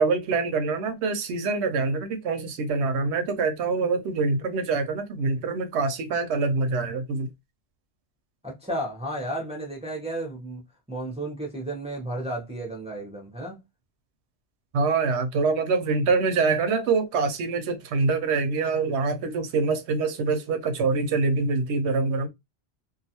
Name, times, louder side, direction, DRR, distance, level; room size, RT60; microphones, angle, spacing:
voice 1, 0.0-7.3 14.7-22.3, right 4 dB, 85° right, 0.9 m, -25 dB
voice 2, 8.4-10.6 10.9-13.6, right 1 dB, 10° right, 0.5 m, -33 dB
2.4 x 2.3 x 2.8 m
omnidirectional pair, 1.1 m